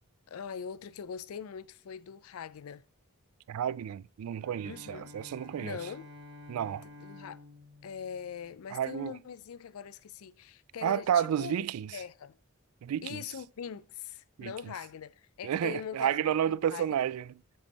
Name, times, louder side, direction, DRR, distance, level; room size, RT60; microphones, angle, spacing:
voice 1, 0.3-2.8 4.6-5.1 5.6-6.1 7.0-7.4 7.8-11.5 11.9-12.4 13.0-16.9, left 7 dB, 75° left, 0.4 m, -42 dB
voice 2, 3.5-5.8 6.5-6.8 8.7-9.1 10.8-11.9 12.8-13.2 14.4-14.5 15.4-17.3, right 9 dB, 90° right, 0.3 m, -31 dB
Bowed string instrument, 4.3-9.2, left 2 dB, 60° right, 1.8 m, -51 dB
7.8 x 5.3 x 4.1 m
head